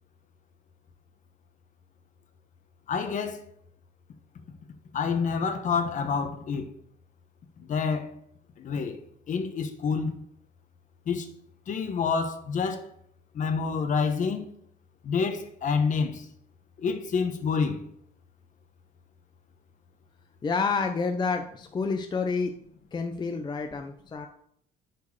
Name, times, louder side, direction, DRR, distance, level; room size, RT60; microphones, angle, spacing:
voice 1, 2.9-3.4 4.9-6.7 7.6-8.1 8.6-9.0 9.3-10.2 11.1-11.3 11.7-12.9 13.3-14.5 15.0-16.2 16.8-17.8, left 5 dB, 50° left, 1.2 m, -28 dB
voice 2, 20.4-22.5 22.9-24.3, left 4 dB, 25° left, 0.7 m, -29 dB
8.5 x 4.5 x 6.6 m
cardioid pair, 110°, 17 cm